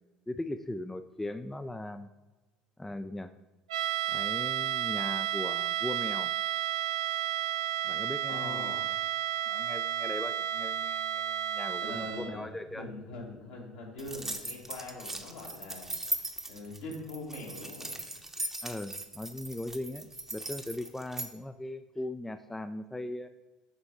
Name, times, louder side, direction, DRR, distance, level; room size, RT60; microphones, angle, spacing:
voice 1, 0.3-2.1 2.8-3.3 4.1-6.3 7.8-8.8 9.5-12.9 18.6-23.3, left 1 dB, 5° left, 9 dB, 0.3 m, -39 dB
sound 1, 3.7-12.4, right 12 dB, 75° right, 0.3 m, -32 dB
voice 2, 8.3-8.8 11.8-15.9 16.5-17.9, left 2 dB, 70° left, -3 dB, 2.0 m, -42 dB
sound 2, 14.0-21.3, right 2 dB, 10° right, 0.8 m, -38 dB
6.7 x 4.2 x 4.4 m, 1.2 s
figure-of-eight pair, 60°, 4 cm